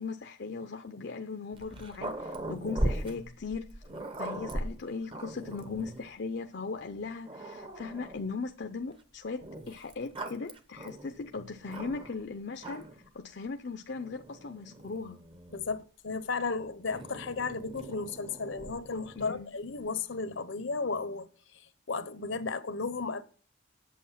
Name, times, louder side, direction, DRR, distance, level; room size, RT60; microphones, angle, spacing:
voice 1, 0.0-3.8 4.2-15.2 19.2-19.6, left 4 dB, 60° left, 0.6 m, -38 dB
Growling, 1.5-6.1 6.8-6.9 7.3-8.3 9.4-12.2 12.6-13.1 14.0-15.8 16.9-19.4, right 1 dB, 25° right, 0.9 m, -39 dB
voice 2, 15.5-21.3 21.9-23.2, left 4 dB, 80° left, 0.9 m, -34 dB
8.5 x 7.6 x 5.7 m
head